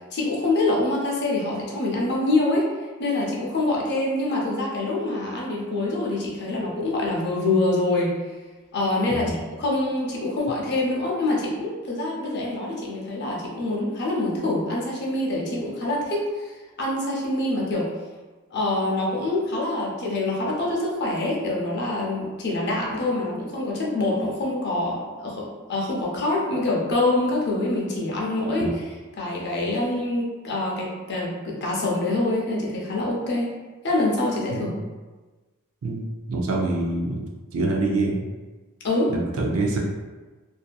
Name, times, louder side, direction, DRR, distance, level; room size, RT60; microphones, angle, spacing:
voice 1, 0.1-2.7 3.0-8.2 8.7-17.9 18.5-28.7 29.2-33.5 33.8-34.7 38.8-39.1, left 2 dB, 50° left, -3 dB, 0.6 m, -25 dB
voice 2, 35.8-37.2 37.5-38.2 39.1-39.8, right 2 dB, 70° right, -1 dB, 0.4 m, -25 dB
2.6 x 2.5 x 2.2 m, 1.3 s
head